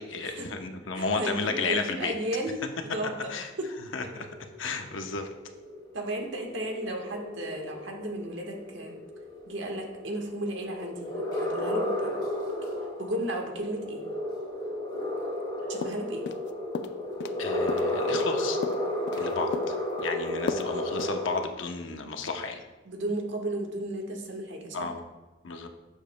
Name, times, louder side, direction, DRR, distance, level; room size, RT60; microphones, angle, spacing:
voice 1, 0.0-2.1 3.3-3.5 3.9-4.3 4.6-5.3 17.4-18.6 19.2-19.8 20.0-22.6 24.7-25.0 25.4-25.7, left 4 dB, 75° left, 5 dB, 0.8 m, -32 dB
voice 2, 0.9-2.6 2.9-3.3 3.6-3.7 5.9-9.0 9.5-12.2 13.0-14.0 15.7-16.2 22.8-24.9, right 1 dB, 65° right, 1 dB, 1.3 m, -34 dB
sound 1, 4.0-21.4, left 1 dB, 20° left, 2.1 m, -33 dB
sound 2, 15.8-16.5 16.7-17.4 17.7-19.2 19.5-20.1 20.5-20.7 21.0-21.1, left 4 dB, 60° left, 0.4 m, -35 dB
12.0 x 7.2 x 2.2 m, 1.1 s
head